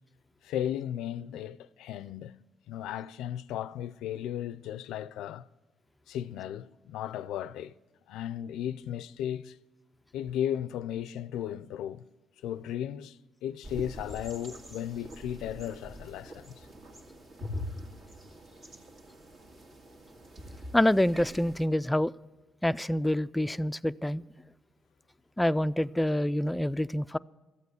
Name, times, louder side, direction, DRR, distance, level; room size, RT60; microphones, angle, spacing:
voice 1, 0.4-2.3 2.7-5.5 6.1-7.7 8.1-9.6 10.1-12.0 12.4-16.7, left 10 dB, 90° left, 0.4 m, -35 dB
sound 1, 13.6-21.7, left 1 dB, 55° right, 2.0 m, -44 dB
voice 2, 20.7-22.1 22.6-24.2 25.4-27.2, left 1 dB, 10° left, 0.3 m, -26 dB
13.5 x 8.3 x 8.0 m
cardioid pair, 90°, 0 cm